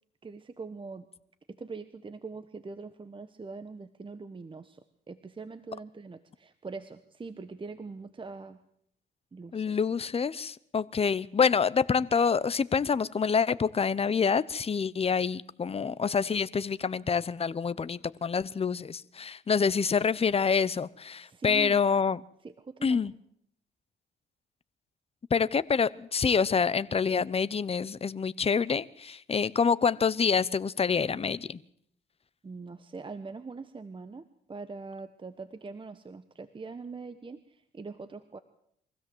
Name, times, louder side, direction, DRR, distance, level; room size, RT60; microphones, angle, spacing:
voice 1, 0.2-1.0 1.5-8.6 9.3-9.8 21.2-21.8 22.4-23.1 32.4-38.4, right 4 dB, 25° right, 11 dB, 1.2 m, -43 dB
voice 2, 9.5-22.2 22.8-23.1 25.3-31.6, left 6 dB, 30° left, 17 dB, 0.9 m, -27 dB
24.0 x 16.0 x 7.9 m, 0.69 s
cardioid pair, 90°, 20 cm